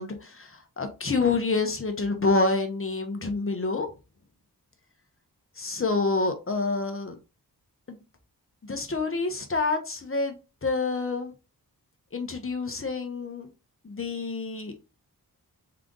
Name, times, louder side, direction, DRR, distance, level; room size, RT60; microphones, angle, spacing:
voice 1, 0.0-3.9 5.6-7.2 7.9-8.0 8.6-11.3 12.1-13.5 13.8-14.7, left 3 dB, 35° left, 1.0 m, -28 dB
3.8 x 3.3 x 3.8 m
wide cardioid pair, 80°, 39 cm